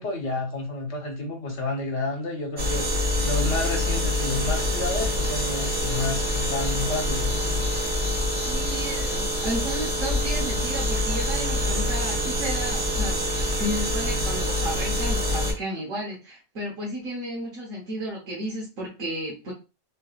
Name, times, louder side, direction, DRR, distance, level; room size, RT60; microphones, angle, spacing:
voice 1, 0.0-7.3, left 2 dB, 65° left, 1 dB, 1.4 m, -30 dB
sound 1, 2.6-15.5, left 1 dB, 40° right, 1.4 m, -26 dB
voice 2, 8.5-19.5, right 1 dB, 75° right, -5 dB, 1.5 m, -33 dB
3.8 x 3.2 x 2.3 m, 0.29 s
omnidirectional pair, 1.3 m